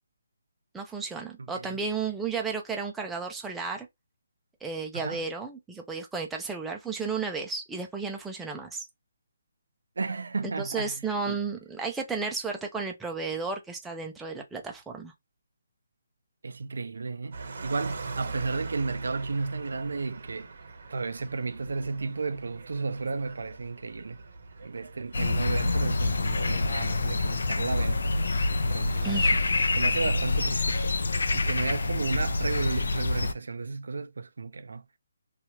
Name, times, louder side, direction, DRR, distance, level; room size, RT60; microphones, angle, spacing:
voice 1, 0.7-3.9 4.6-8.9 10.6-15.1 29.0-29.4, right 4 dB, 5° right, 0.4 m, -33 dB
voice 2, 1.5-1.8 4.9-5.2 10.0-11.4 16.4-20.5 20.9-24.2 24.6-28.2 28.6-29.3 29.7-31.0 31.3-34.8, right 4 dB, 75° right, 0.4 m, -33 dB
sound 1, 17.3-29.7, right 3 dB, 55° right, 0.8 m, -43 dB
sound 2, 25.1-33.3, left 3 dB, 75° left, 0.4 m, -26 dB
2.8 x 2.3 x 2.9 m
hypercardioid pair, 165°, 0 cm